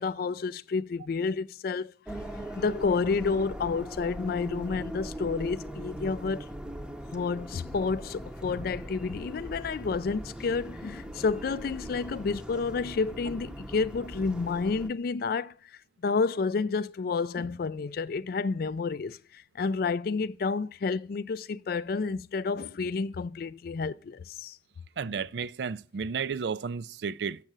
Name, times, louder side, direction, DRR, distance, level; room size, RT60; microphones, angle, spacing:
voice 1, 0.0-1.9 2.5-6.5 7.1-15.5 16.0-24.6, left 4 dB, 50° left, 0.4 m, -30 dB
sound 1, 2.1-14.9, equal, 5° right, 0.7 m, -40 dB
voice 2, 25.0-27.4, right 6 dB, 65° right, 0.4 m, -32 dB
7.4 x 6.6 x 6.0 m
head